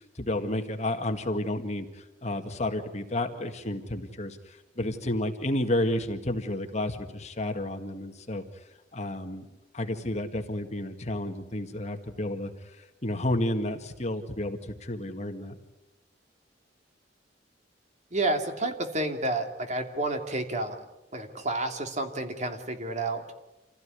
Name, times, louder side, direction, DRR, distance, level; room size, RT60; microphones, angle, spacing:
voice 1, 0.0-9.4 9.7-15.6, left 1 dB, 40° left, 6 dB, 2.0 m, -31 dB
voice 2, 18.1-20.8 21.1-23.2, right 2 dB, 40° right, 5 dB, 2.9 m, -30 dB
27.5 x 16.5 x 9.8 m, 1.0 s
head